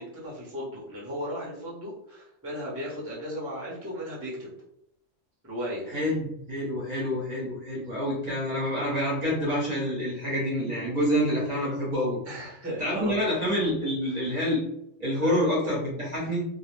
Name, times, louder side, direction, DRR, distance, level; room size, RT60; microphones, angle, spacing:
voice 1, 0.0-4.5 5.4-5.9 12.2-13.2 13.8-14.2 15.2-15.4, equal, 15° right, -6 dB, 0.6 m, -36 dB
voice 2, 5.9-12.2 12.8-14.6 15.0-16.5, equal, 35° right, -5 dB, 0.9 m, -27 dB
2.3 x 2.0 x 3.1 m, 0.78 s
omnidirectional pair, 1.3 m